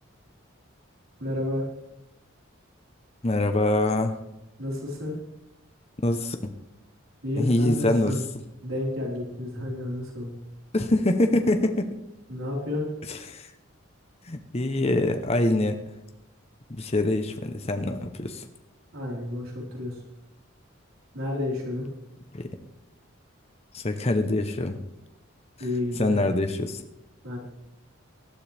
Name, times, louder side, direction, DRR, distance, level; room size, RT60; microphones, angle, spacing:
voice 1, 1.2-1.6 4.6-5.1 7.2-8.2 8.6-10.3 12.3-12.9 18.9-20.0 21.1-21.9 25.6-26.2 27.2-27.4, left 1 dB, 80° right, -3 dB, 4.3 m, -30 dB
voice 2, 3.2-4.2 6.0-6.4 7.4-8.2 10.7-12.0 13.1-13.5 14.3-15.8 16.7-18.4 22.3-22.5 23.7-24.8 25.9-26.8, left 1 dB, 30° left, 7 dB, 0.8 m, -24 dB
18.5 x 12.0 x 3.4 m, 0.89 s
head